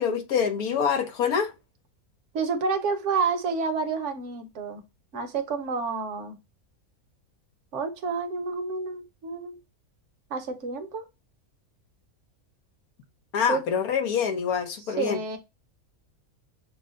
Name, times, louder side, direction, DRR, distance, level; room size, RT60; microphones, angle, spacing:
voice 1, 0.0-1.5 13.3-15.2, left 7 dB, 80° left, 1.4 m, -25 dB
voice 2, 2.3-4.8 5.1-6.4 7.7-9.6 10.3-11.1 13.5-13.6 15.0-15.4, right 4 dB, 60° right, 1.1 m, -29 dB
6.3 x 2.1 x 3.7 m
omnidirectional pair, 1.5 m